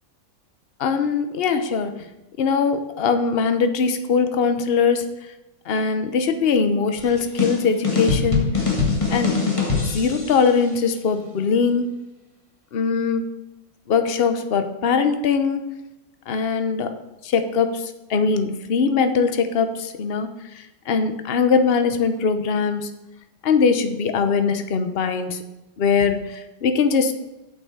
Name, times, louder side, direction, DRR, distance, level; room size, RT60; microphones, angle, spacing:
voice 1, 0.8-1.9 2.4-5.1 5.7-8.6 9.1-9.4 9.8-12.0 12.7-13.2 13.9-15.6 16.3-16.9 17.2-20.3 20.5-22.9 23.4-25.4 25.8-27.1, left 5 dB, 55° left, 8 dB, 0.7 m, -21 dB
sound 1, 7.0-10.5, left 4 dB, 15° left, 1.6 m, -23 dB
8.3 x 5.9 x 7.2 m, 1.0 s
omnidirectional pair, 2.1 m